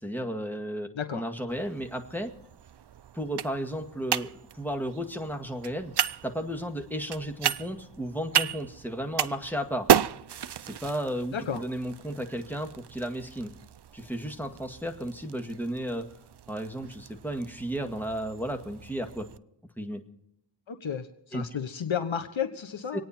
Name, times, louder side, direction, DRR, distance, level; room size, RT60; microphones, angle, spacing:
voice 1, 0.0-2.3 3.1-5.9 6.2-9.9 10.6-13.5 13.9-16.1 16.5-19.3 19.8-20.0 21.3-21.4 22.9-23.0, equal, 5° left, 4 dB, 2.0 m, -34 dB
sound 1, 1.5-19.4, right 9 dB, 60° right, 0.6 m, -33 dB
voice 2, 20.7-23.0, left 7 dB, 85° left, 7 dB, 1.1 m, -32 dB
26.5 x 9.4 x 4.3 m, 0.80 s
wide cardioid pair, 65°, 46 cm